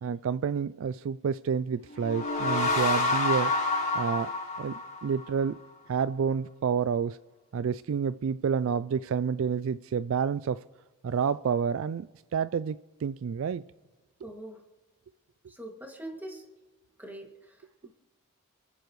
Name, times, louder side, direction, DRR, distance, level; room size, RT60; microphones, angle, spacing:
voice 1, 0.0-3.5 3.9-4.3 4.6-5.6 5.9-7.2 7.5-10.6 11.0-12.1 12.3-13.6 14.2-14.3, right 6 dB, 65° right, 0.3 m, -29 dB
sound 1, 1.9-5.4, left 2 dB, 45° left, 4.0 m, -28 dB
voice 2, 14.2-14.6 15.5-16.4 17.0-17.9, right 1 dB, 10° right, 2.2 m, -43 dB
28.0 x 9.9 x 3.2 m
head